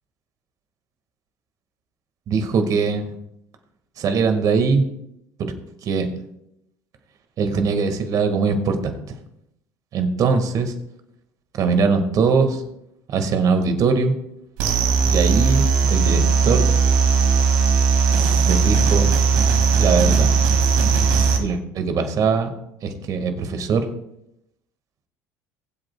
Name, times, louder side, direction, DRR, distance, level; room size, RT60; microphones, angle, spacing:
voice 1, 2.3-3.1 4.0-4.8 5.4-5.5 5.8-6.1 7.4-9.1 9.9-10.7 11.6-12.6 13.1-14.2 15.1-16.7 18.4-19.1 19.8-20.5 21.4-22.5 22.8-23.8, right 5 dB, 50° right, 7 dB, 1.7 m, -21 dB
sound 1, 14.6-21.4, right 5 dB, 70° right, 2.0 m, -18 dB
21.0 x 7.9 x 2.3 m, 0.82 s
hypercardioid pair, 80°, 8 cm